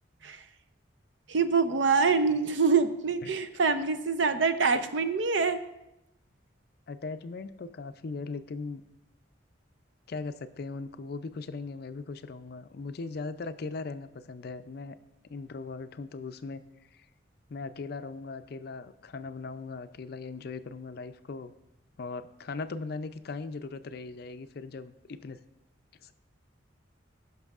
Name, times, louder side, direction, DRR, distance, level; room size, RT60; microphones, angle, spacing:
voice 1, 1.3-5.6, right 5 dB, 70° right, 10 dB, 0.6 m, -25 dB
voice 2, 6.9-8.8 10.1-15.0 15.2-16.6 16.9-17.1 17.5-21.5 22.0-25.4 26.0-26.1, left 4 dB, 55° left, 11 dB, 0.4 m, -39 dB
17.0 x 6.0 x 2.4 m, 0.91 s
head